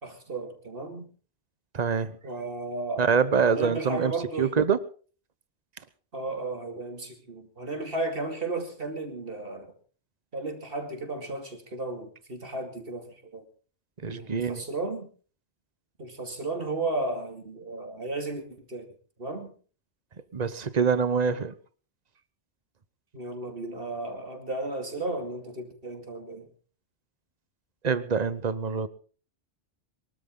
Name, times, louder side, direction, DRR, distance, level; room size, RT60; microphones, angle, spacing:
voice 1, 0.0-1.1 2.2-3.1 3.4-4.5 6.1-9.8 10.3-13.4 14.0-15.1 16.0-18.9 19.2-19.6 23.1-26.5, right 2 dB, 55° right, 5 dB, 2.7 m, -34 dB
voice 2, 1.7-2.2 3.0-4.1 4.4-4.8 14.0-14.6 20.3-21.5 27.8-28.9, right 6 dB, 40° right, 15 dB, 1.1 m, -25 dB
23.0 x 13.0 x 3.8 m, 0.40 s
omnidirectional pair, 1.1 m